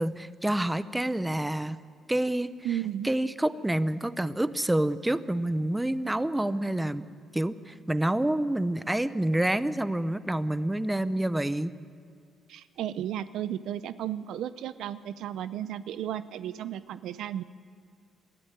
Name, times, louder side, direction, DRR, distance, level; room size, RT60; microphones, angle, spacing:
voice 1, 0.0-1.8 2.1-2.5 3.0-7.1 7.3-11.7, right 1 dB, 10° right, 14 dB, 0.7 m, -28 dB
voice 2, 2.6-3.1 12.5-17.4, right 11 dB, 80° right, 14 dB, 0.6 m, -34 dB
21.0 x 13.5 x 9.5 m, 2.2 s
cardioid pair, 90°, 0 cm